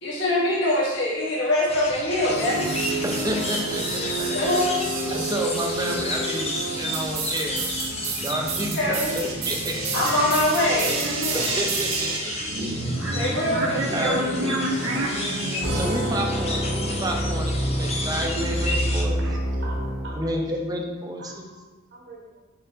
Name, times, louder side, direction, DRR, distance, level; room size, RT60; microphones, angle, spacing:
voice 1, 0.0-2.7 4.3-4.9 8.8-9.1 9.9-11.5 12.6-12.7 13.1-14.5, left 1 dB, 65° left, -5 dB, 1.2 m, -24 dB
sound 1, 1.7-19.0, left 2 dB, 30° left, 0.5 m, -33 dB
sound 2, 2.3-20.3, right 2 dB, 80° right, 0.8 m, -28 dB
voice 2, 3.0-4.3 5.1-7.6 8.2-9.8 11.3-12.9 13.9-14.2 15.7-19.2 20.2-21.5, right 1 dB, 20° right, 1 dB, 0.5 m, -30 dB
voice 3, 19.2-20.5 21.2-21.4 21.9-22.4, right 2 dB, 65° right, -3 dB, 1.1 m, -42 dB
4.2 x 4.0 x 2.7 m, 1.2 s
head